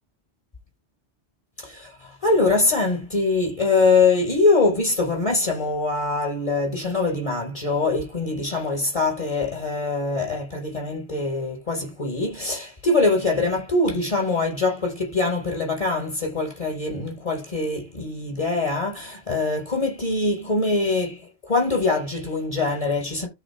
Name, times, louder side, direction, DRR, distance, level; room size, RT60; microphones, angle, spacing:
voice 1, 1.6-23.3, left 3 dB, 30° left, 5.7 m, -23 dB
13.0 x 4.7 x 3.7 m
omnidirectional pair, 1.2 m